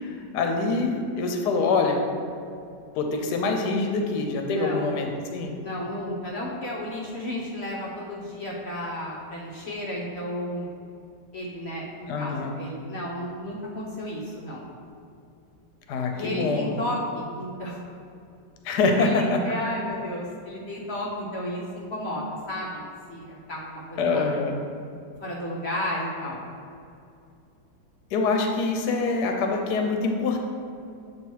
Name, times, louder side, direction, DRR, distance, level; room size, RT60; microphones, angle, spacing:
voice 1, 0.1-2.0 3.0-5.5 12.1-12.6 15.9-16.7 18.6-19.4 24.0-24.7 28.1-30.4, left 3 dB, 70° left, 3 dB, 1.2 m, -25 dB
voice 2, 4.5-5.0 5.6-10.7 11.3-14.6 16.1-17.8 19.0-24.3 25.2-26.4, left 1 dB, 50° left, -4 dB, 0.9 m, -33 dB
8.2 x 3.0 x 4.6 m, 2.6 s
omnidirectional pair, 1.9 m